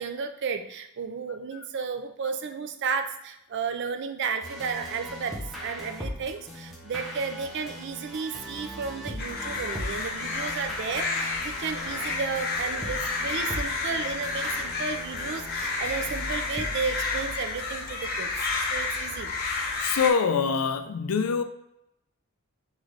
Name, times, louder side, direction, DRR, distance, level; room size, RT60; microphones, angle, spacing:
voice 1, 0.0-18.3 18.6-19.3, right 5 dB, 50° right, 8 dB, 0.4 m, -33 dB
sound 1, 4.4-17.7, equal, ahead, 0.6 m, -39 dB
sound 2, 9.2-20.1, left 3 dB, 40° left, 0.7 m, -31 dB
voice 2, 19.8-21.4, left 6 dB, 80° left, 8 dB, 0.4 m, -24 dB
3.8 x 3.1 x 3.1 m, 0.83 s
head